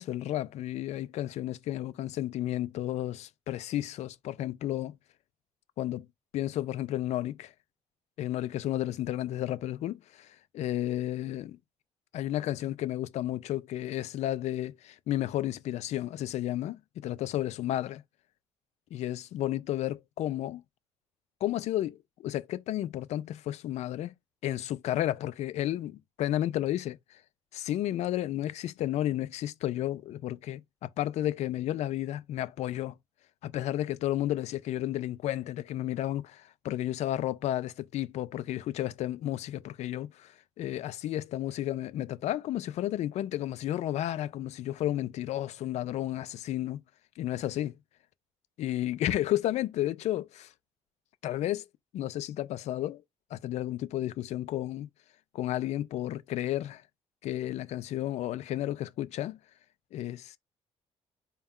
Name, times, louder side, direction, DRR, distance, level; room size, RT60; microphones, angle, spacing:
voice 1, 0.0-5.0 5.8-6.1 6.3-7.5 8.2-11.6 12.1-18.0 18.9-20.6 21.4-24.1 24.4-27.2 27.5-32.9 33.4-46.8 47.2-47.7 48.6-50.5 51.2-51.6 51.9-53.0 53.3-54.9 55.3-56.8 57.2-59.4 59.9-60.4, left 13 dB, 70° left, 0.4 m, -32 dB
4.1 x 2.3 x 3.6 m
cardioid pair, 115°, 12 cm